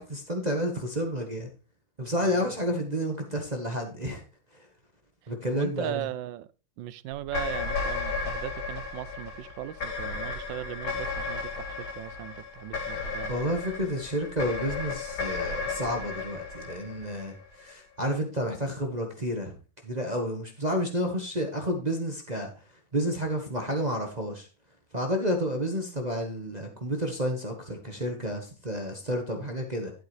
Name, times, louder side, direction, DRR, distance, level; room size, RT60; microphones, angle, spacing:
voice 1, 0.0-1.5 2.0-4.2 5.3-6.1 13.3-19.6 19.8-22.5 22.9-24.5 24.9-29.9, equal, 25° right, 1.2 m, -30 dB
voice 2, 5.5-6.5 6.8-13.3, right 13 dB, 75° right, 1.2 m, -38 dB
sound 1, 7.2-17.7, left 4 dB, 85° left, 2.7 m, -34 dB
12.0 x 8.1 x 3.2 m
omnidirectional pair, 2.2 m